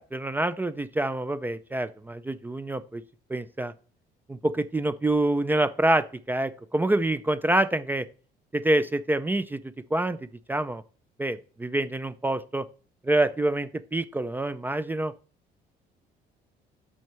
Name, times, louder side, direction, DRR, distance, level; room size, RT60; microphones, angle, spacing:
voice 1, 0.0-3.0 3.3-3.7 4.3-8.1 8.5-9.6 9.9-10.2 10.5-10.8 11.2-12.7 13.0-15.1, right 1 dB, 10° right, 13 dB, 0.4 m, -26 dB
6.2 x 4.4 x 6.0 m, 0.39 s
cardioid pair, 110°, 17 cm